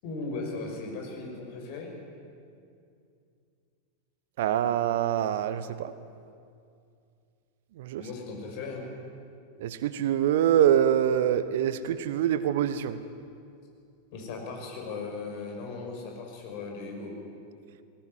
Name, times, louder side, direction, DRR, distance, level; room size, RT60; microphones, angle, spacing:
voice 1, 0.0-1.9 8.0-8.9 14.1-17.1, left 3 dB, 45° left, 1 dB, 6.2 m, -37 dB
voice 2, 4.4-5.9 7.8-8.0 9.6-13.0, right 10 dB, 55° right, 14 dB, 1.0 m, -25 dB
21.0 x 19.0 x 9.8 m, 2.4 s
figure-of-eight pair, 90°, 0 cm